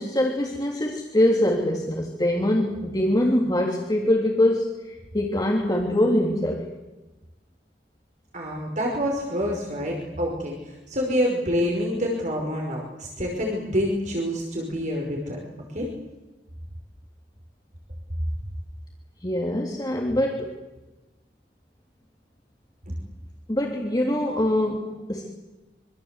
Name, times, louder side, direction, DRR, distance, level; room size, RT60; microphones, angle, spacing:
voice 1, 0.0-6.6 19.2-20.6 23.5-25.3, left 1 dB, 25° left, -1 dB, 3.1 m, -23 dB
voice 2, 8.3-15.4 15.7-15.9, equal, 45° right, 0 dB, 5.2 m, -27 dB
26.0 x 25.0 x 8.2 m, 1.1 s
head